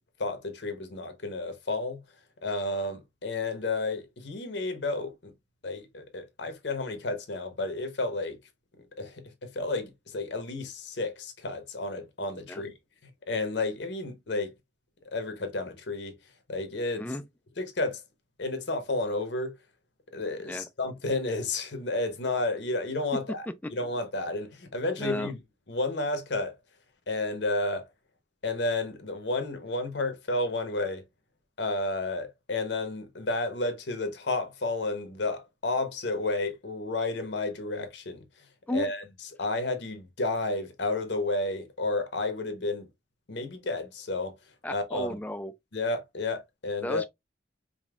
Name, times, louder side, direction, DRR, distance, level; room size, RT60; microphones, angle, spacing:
voice 1, 0.2-2.0 2.4-5.3 5.6-8.4 9.0-12.7 13.3-14.5 15.1-16.1 16.5-17.0 17.6-18.0 18.4-19.6 20.1-23.5 23.7-25.4 25.7-26.5 27.1-27.9 28.4-31.0 31.6-38.2 38.7-39.0 39.4-42.9 43.3-44.3 44.7-45.1 45.7-47.0, left 2 dB, 70° left, 0.9 m, -31 dB
voice 2, 25.0-25.3 38.7-38.9 44.6-45.5 46.8-47.0, left 1 dB, 10° left, 0.3 m, -33 dB
5.1 x 2.7 x 2.4 m
head